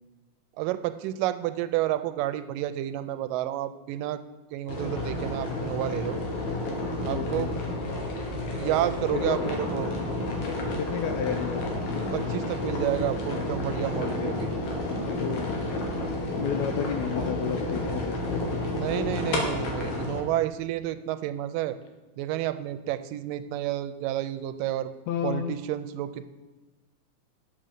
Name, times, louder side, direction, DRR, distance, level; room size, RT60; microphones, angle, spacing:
voice 1, 0.6-4.2 4.5-6.2 7.0-7.5 8.4-9.9 12.1-14.5 18.7-21.8 22.2-24.9 25.2-26.3, right 13 dB, 85° right, 12 dB, 2.2 m, -30 dB
sound 1, 4.7-20.2, left 2 dB, 60° left, 2.7 m, -30 dB
voice 2, 7.1-7.5 9.1-9.4 10.8-11.6 14.0-14.3 15.2-15.5 16.4-18.4 25.1-25.6, left 8 dB, 85° left, 6 dB, 1.6 m, -32 dB
8.4 x 7.6 x 6.7 m, 1.2 s
omnidirectional pair, 3.9 m